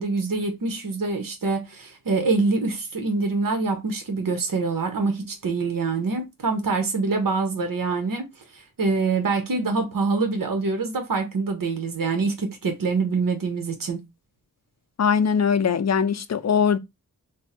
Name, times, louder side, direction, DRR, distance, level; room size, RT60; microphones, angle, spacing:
voice 1, 0.0-8.3 8.5-14.0, right 4 dB, 75° right, 0.9 m, -25 dB
voice 2, 15.0-16.8, left 6 dB, 50° left, 0.5 m, -21 dB
3.5 x 2.0 x 4.2 m
wide cardioid pair, 70°, 34 cm